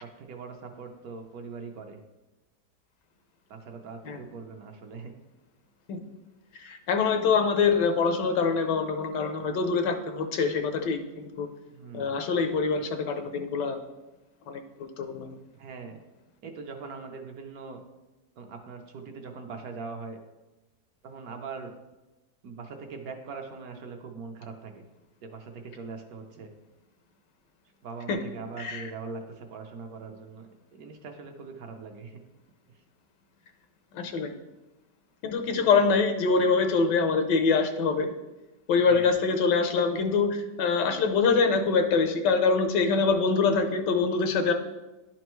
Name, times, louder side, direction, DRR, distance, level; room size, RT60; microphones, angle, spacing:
voice 1, 0.0-2.0 3.5-5.1 11.7-12.1 15.5-16.0 16.4-17.8 18.4-20.2 21.0-21.7 22.4-24.7 25.2-26.5 27.8-32.2 38.8-39.1, right 4 dB, 65° right, 4 dB, 1.1 m, -41 dB
voice 2, 6.5-11.5 11.9-13.8 14.5-15.3 28.1-28.2 28.6-28.8 33.9-34.4 35.2-38.1 38.7-44.5, left 4 dB, 80° left, 7 dB, 1.3 m, -25 dB
11.0 x 4.4 x 3.0 m, 1.1 s
omnidirectional pair, 1.9 m